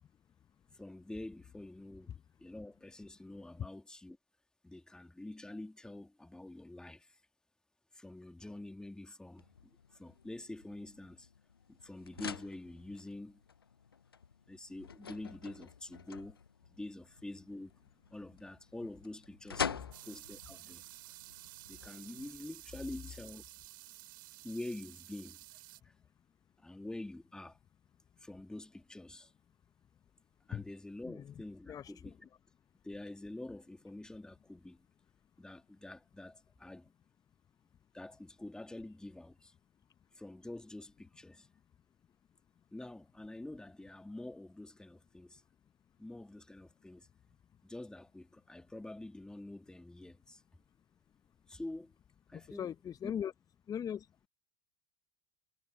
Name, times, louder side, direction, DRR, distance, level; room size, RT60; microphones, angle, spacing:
voice 1, 0.7-4.2 4.6-7.2 7.9-9.5 9.9-11.3 11.7-13.4 14.5-17.7 18.1-20.8 21.7-23.4 24.4-25.4 25.8-25.9 26.6-27.6 28.2-29.3 30.5-32.1 32.8-34.9 35.4-36.9 37.9-39.5 40.1-41.5 42.7-45.4 46.0-47.1 47.6-50.4 51.5-51.9 52.3-52.7 53.0-53.1, left 1 dB, 5° left, 2.3 m, -47 dB
sound 1, 9.4-22.3, left 6 dB, 90° left, 0.6 m, -46 dB
sound 2, 19.9-25.8, right 19 dB, 65° right, 6.4 m, -53 dB
voice 2, 31.0-31.3 31.6-32.3 52.3-53.3 53.7-54.1, left 9 dB, 30° left, 1.1 m, -40 dB
hypercardioid pair, 80°, 12 cm